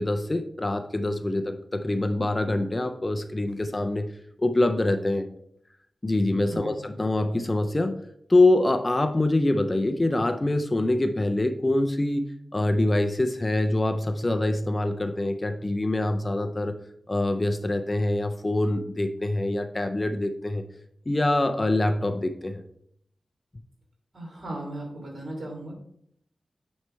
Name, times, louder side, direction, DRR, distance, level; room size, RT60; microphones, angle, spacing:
voice 1, 0.0-4.1 4.4-5.3 6.0-8.0 8.3-12.2 12.5-16.7 17.1-20.6 21.1-22.6, left 2 dB, 25° left, 7 dB, 0.4 m, -25 dB
voice 2, 24.1-25.7, right 1 dB, 55° right, 0 dB, 2.9 m, -36 dB
9.2 x 3.2 x 4.4 m, 0.70 s
wide cardioid pair, 120°, 0 cm